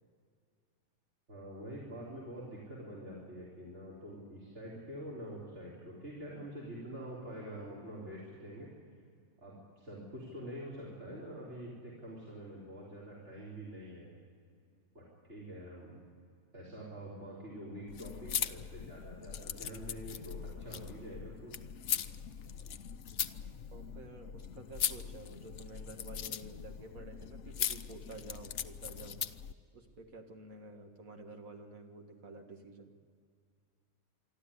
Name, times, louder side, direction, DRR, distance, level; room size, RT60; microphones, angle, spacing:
voice 1, 1.3-8.7 9.4-14.1 14.9-15.9 16.5-21.5, right 1 dB, 50° right, -5 dB, 4.2 m, -46 dB
sound 1, 17.9-29.5, left 9 dB, 60° left, 0.9 m, -40 dB
voice 2, 23.7-29.2 29.7-32.9, right 2 dB, 65° right, 3 dB, 2.1 m, -50 dB
25.0 x 13.0 x 9.8 m, 2.3 s
omnidirectional pair, 1.5 m